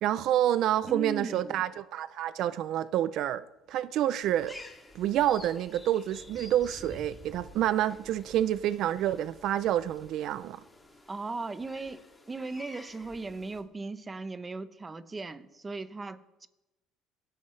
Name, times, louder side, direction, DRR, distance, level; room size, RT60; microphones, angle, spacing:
voice 1, 0.0-4.6 4.9-10.6, right 12 dB, 60° right, 0.5 m, -28 dB
voice 2, 0.9-1.6 11.1-16.5, right 3 dB, 15° right, 0.8 m, -38 dB
sound 1, 4.2-13.6, left 2 dB, 10° left, 2.3 m, -50 dB
26.5 x 14.0 x 3.2 m
cardioid pair, 140°, 0 cm